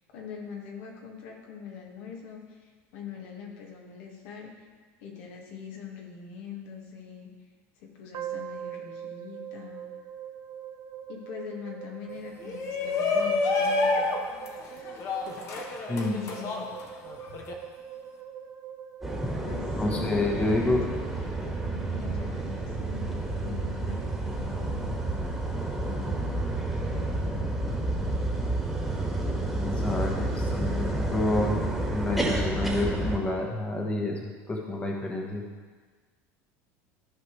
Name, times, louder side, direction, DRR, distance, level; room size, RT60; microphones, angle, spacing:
voice 1, 0.1-4.5 5.0-7.3 7.8-9.9 11.1-14.1 15.9-16.6 19.4-25.1 25.9-27.3, left 6 dB, 75° left, 0 dB, 1.8 m, -43 dB
sound 1, 8.1-20.4, right 9 dB, 50° right, 0.8 m, -42 dB
Shout, 12.4-17.5, left 3 dB, 45° left, 1.1 m, -29 dB
sound 2, 19.0-33.2, right 2 dB, ahead, 1.6 m, -30 dB
voice 2, 19.8-20.9 29.5-31.6 31.9-35.4, left 2 dB, 20° left, 0 dB, 1.1 m, -28 dB
14.5 x 5.0 x 3.2 m, 1.5 s
supercardioid pair, 125°, 7 cm